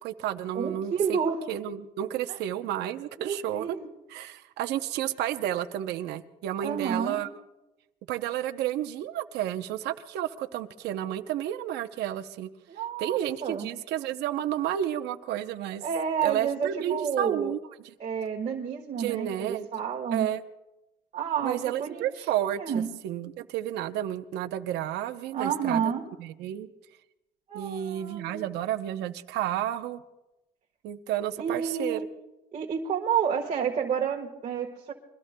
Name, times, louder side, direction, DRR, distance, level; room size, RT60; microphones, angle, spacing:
voice 1, 0.0-1.2 1.5-3.8 4.1-7.3 8.1-12.5 13.0-15.9 16.2-17.6 19.0-19.7 20.1-20.4 21.4-25.9 26.2-26.7 27.5-30.0 30.8-32.0, right 11 dB, 80° right, 8 dB, 0.8 m, -31 dB
voice 2, 0.5-1.4 2.3-2.4 3.2-3.9 6.6-7.2 12.7-13.7 15.8-17.5 18.0-20.3 21.1-22.0 22.6-22.9 25.3-26.0 27.5-28.5 31.4-32.0 32.5-34.9, right 7 dB, 45° right, 0 dB, 1.5 m, -30 dB
28.5 x 22.5 x 2.2 m, 0.99 s
cardioid pair, 110°, 17 cm